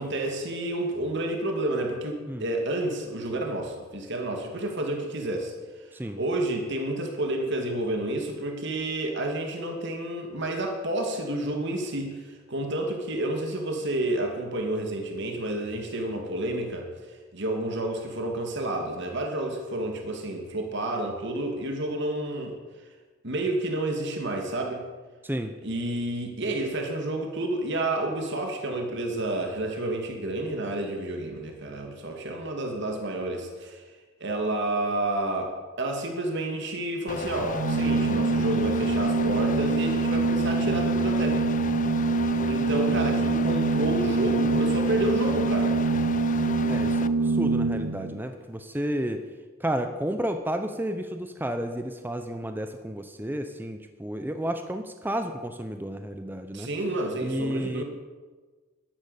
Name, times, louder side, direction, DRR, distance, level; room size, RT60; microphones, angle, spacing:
voice 1, 0.0-5.5 5.8-22.5 23.2-24.8 25.6-33.8 34.2-41.4 42.2-45.7 56.5-57.8, right 1 dB, 60° right, 2 dB, 2.5 m, -30 dB
voice 2, 25.2-25.5 46.7-49.2 49.6-56.7 57.2-57.8, right 1 dB, 10° right, 7 dB, 0.8 m, -31 dB
sound 1, 37.1-47.1, left 4 dB, 40° left, 0.5 m, -34 dB
Organ, 37.5-48.2, right 3 dB, 90° right, 0.7 m, -25 dB
13.0 x 12.0 x 8.3 m, 1.4 s
head